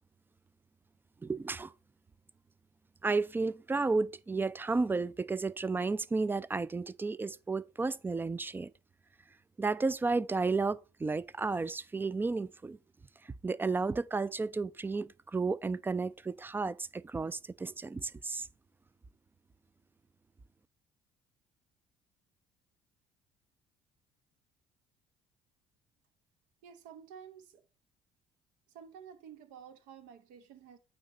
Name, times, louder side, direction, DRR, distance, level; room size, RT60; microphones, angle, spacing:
voice 1, 1.2-1.7 3.0-8.7 9.6-12.8 13.4-18.5, right 3 dB, 15° right, 0.3 m, -32 dB
voice 2, 26.6-27.6 28.7-30.8, right 8 dB, 65° right, 0.9 m, -51 dB
8.7 x 2.9 x 5.2 m
hypercardioid pair, 55°, 14 cm